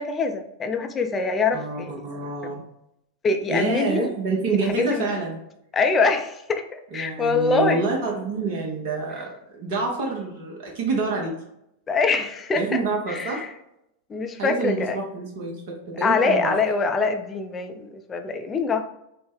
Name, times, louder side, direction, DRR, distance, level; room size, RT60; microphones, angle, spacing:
voice 1, 0.0-2.0 2.4-2.6 3.2-4.1 4.7-5.1 5.7-7.9 11.9-12.8 13.1-13.5 14.1-15.0 16.0-18.9, left 4 dB, 20° left, 5 dB, 0.4 m, -24 dB
voice 2, 1.5-2.6 3.5-5.4 6.9-11.3 12.5-13.4 14.4-16.6, right 3 dB, 50° right, -1 dB, 0.8 m, -27 dB
4.1 x 2.1 x 3.5 m, 0.81 s
figure-of-eight pair, 90°, 0 cm